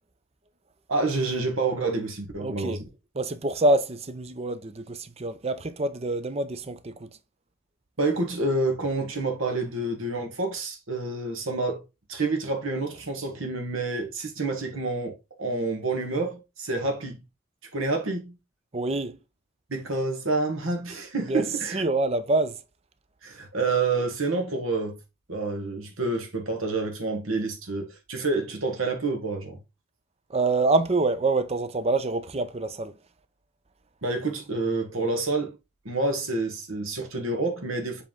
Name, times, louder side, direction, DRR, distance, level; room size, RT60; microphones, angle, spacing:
voice 1, 0.9-2.8 8.0-11.8 12.1-17.2 17.7-18.4 19.7-21.8 23.2-25.0 25.3-29.6 34.0-35.6 35.8-38.0, right 3 dB, 65° right, 1.4 m, -28 dB
voice 2, 2.4-2.8 3.2-7.1 18.7-19.2 21.3-21.4 21.7-22.6 30.3-32.9, right 2 dB, 30° right, 0.6 m, -26 dB
7.5 x 3.5 x 3.7 m
head